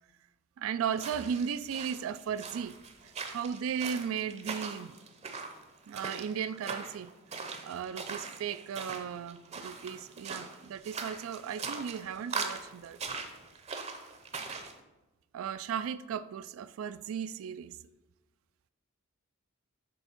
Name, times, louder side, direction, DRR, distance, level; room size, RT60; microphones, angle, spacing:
voice 1, 0.6-2.8 3.0-4.9 5.9-7.1 7.6-13.0 15.3-17.8, right 7 dB, 70° right, 14 dB, 0.3 m, -36 dB
sound 1, 0.9-14.7, right 4 dB, 30° right, 0.6 m, -41 dB
6.9 x 3.5 x 5.7 m, 1.1 s
head